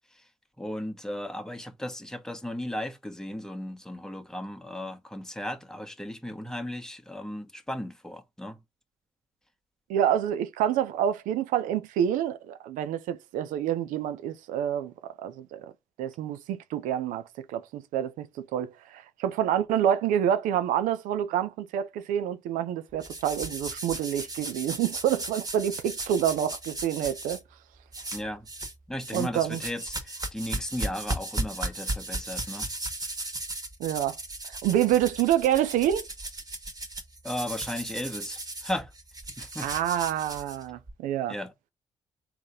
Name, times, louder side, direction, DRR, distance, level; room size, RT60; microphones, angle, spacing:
voice 1, 0.6-8.6 28.1-28.5 28.9-32.7 37.2-38.9 39.4-39.7 41.3-41.5, left 1 dB, 5° left, 1.1 m, -35 dB
voice 2, 9.9-14.9 15.2-15.7 16.0-27.4 29.1-29.6 33.8-34.2 34.4-36.1 39.6-41.4, right 10 dB, 80° right, 0.5 m, -27 dB
sound 1, 23.0-27.4 27.9-28.7 29.0-40.9, right 2 dB, 30° right, 1.6 m, -36 dB
3.7 x 2.9 x 4.8 m
hypercardioid pair, 45°, 14 cm